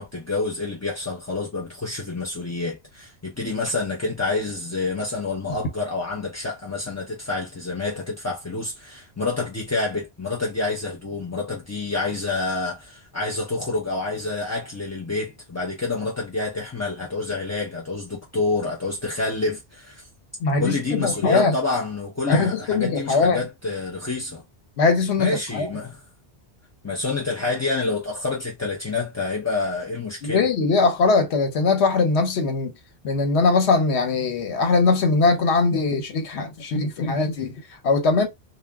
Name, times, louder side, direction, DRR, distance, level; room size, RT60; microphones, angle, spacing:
voice 1, 0.0-20.1 20.6-24.4 25.2-26.0 26.8-30.4, left 3 dB, 25° left, 0.4 m, -28 dB
voice 2, 20.4-21.5 22.3-23.4 24.8-25.7 30.2-32.7 33.0-38.3, left 4 dB, 80° left, 1.1 m, -21 dB
2.3 x 2.1 x 3.4 m
omnidirectional pair, 1.1 m